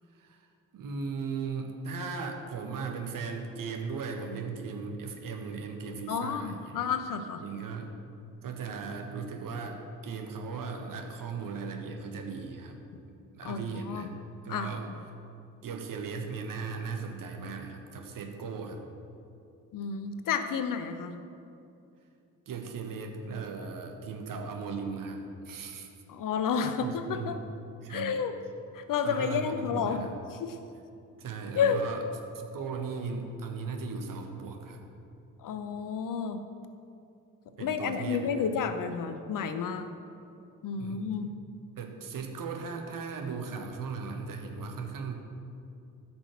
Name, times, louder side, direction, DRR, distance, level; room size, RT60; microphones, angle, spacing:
voice 1, 0.1-0.5 0.7-6.8 7.4-7.9 8.4-12.8 13.3-14.1 14.4-14.9 15.6-18.8 22.5-25.9 26.8-27.4 27.8-28.2 29.0-30.2 31.2-32.0 32.3-34.8 37.6-38.4 40.7-41.1 41.8-45.1, right 5 dB, 45° right, 3 dB, 1.6 m, -37 dB
voice 2, 6.1-7.4 13.4-14.1 14.5-14.7 19.7-21.2 26.1-27.4 27.9-28.3 28.7-30.0 30.4-30.5 31.6-31.8 35.4-36.4 37.6-39.9 40.6-41.3, left 6 dB, 45° left, 9 dB, 0.9 m, -31 dB
14.0 x 6.1 x 7.4 m, 2.6 s
figure-of-eight pair, 40°, 44 cm